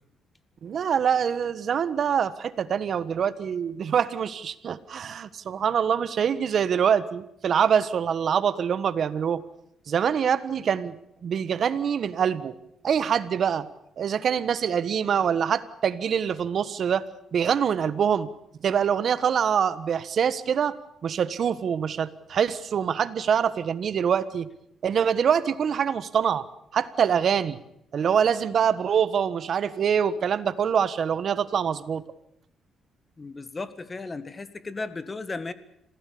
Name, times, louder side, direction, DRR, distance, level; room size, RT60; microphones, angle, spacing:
voice 1, 0.6-9.4 9.9-11.0 11.2-12.6 12.8-13.7 14.0-17.1 17.3-18.3 18.6-20.7 21.0-24.5 24.8-26.4 26.7-27.6 27.9-32.0, right 7 dB, 55° right, 14 dB, 1.4 m, -24 dB
voice 2, 33.2-35.5, left 3 dB, 30° left, 12 dB, 1.9 m, -35 dB
26.5 x 16.0 x 8.6 m, 0.79 s
cardioid pair, 90°, 0 cm